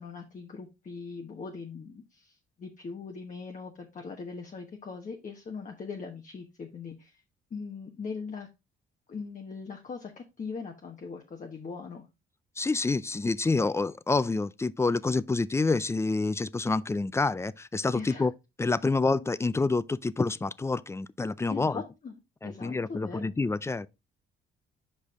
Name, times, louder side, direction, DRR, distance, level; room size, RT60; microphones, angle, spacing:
voice 1, 0.0-7.2 7.5-8.5 9.1-12.1 17.9-18.3 21.5-22.1 22.4-23.3, left 5 dB, 40° left, 1.2 m, -40 dB
voice 2, 12.6-18.3 18.6-21.8 22.4-23.9, left 3 dB, 15° left, 0.4 m, -28 dB
6.6 x 5.1 x 3.6 m
cardioid pair, 90°, 20 cm